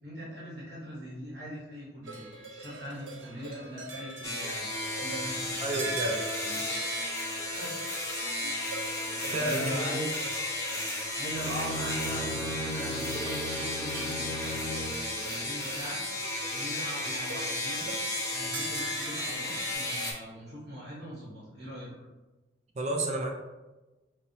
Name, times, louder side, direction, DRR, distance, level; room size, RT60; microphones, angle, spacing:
voice 1, 0.0-6.0 6.4-6.7 7.6-7.8 9.2-10.3 11.1-16.0 16.5-17.9 18.3-21.9, equal, 60° right, -8 dB, 1.0 m, -41 dB
sound 1, 2.0-19.7, right 2 dB, 80° right, 0.6 m, -42 dB
sound 2, 4.2-20.1, left 1 dB, 15° left, 0.6 m, -34 dB
voice 2, 5.6-6.2 9.3-9.9 22.8-23.3, right 1 dB, 40° right, 2 dB, 0.4 m, -30 dB
Bowed string instrument, 11.2-15.1, left 1 dB, 80° left, 0.5 m, -37 dB
5.3 x 2.0 x 2.7 m, 1.1 s
head